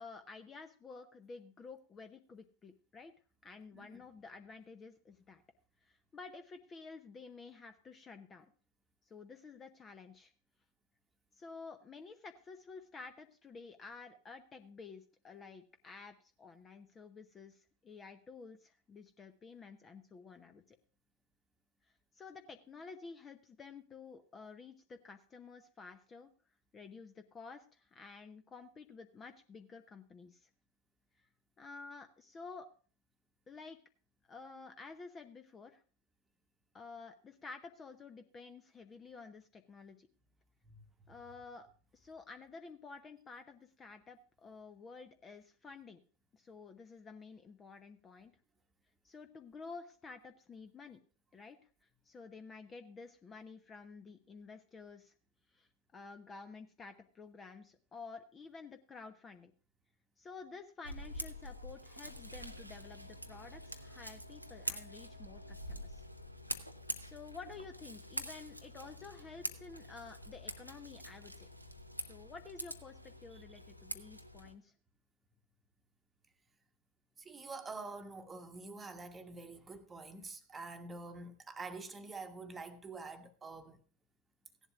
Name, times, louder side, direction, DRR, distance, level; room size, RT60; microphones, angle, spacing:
voice 1, 0.0-3.1 3.4-5.4 5.8-8.5 9.1-10.3 11.3-20.8 22.1-26.3 26.7-30.5 31.6-32.7 33.5-33.8 34.2-35.8 36.7-40.1 41.1-41.7 41.9-46.0 46.3-48.3 49.0-51.0 51.3-51.6 52.0-55.1 55.5-59.5 60.2-66.0 67.0-71.5 72.0-74.7, left 4 dB, 20° left, 0.8 m, -51 dB
Scissors, 60.8-74.5, equal, 90° right, 0.8 m, -45 dB
voice 2, 77.2-83.8, right 3 dB, 15° right, 1.2 m, -47 dB
16.5 x 11.0 x 2.4 m
figure-of-eight pair, 90°, 0 cm